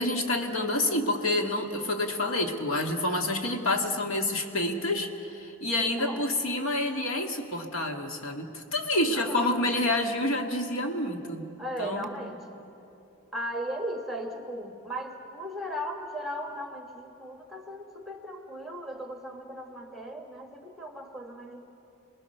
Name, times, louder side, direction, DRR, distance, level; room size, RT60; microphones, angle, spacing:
voice 1, 0.0-11.4 11.8-12.1, left 1 dB, 85° left, 4 dB, 1.9 m, -28 dB
voice 2, 9.1-9.8 11.6-12.6 13.3-21.6, equal, ahead, 4 dB, 1.5 m, -37 dB
27.5 x 20.5 x 6.7 m, 2.9 s
head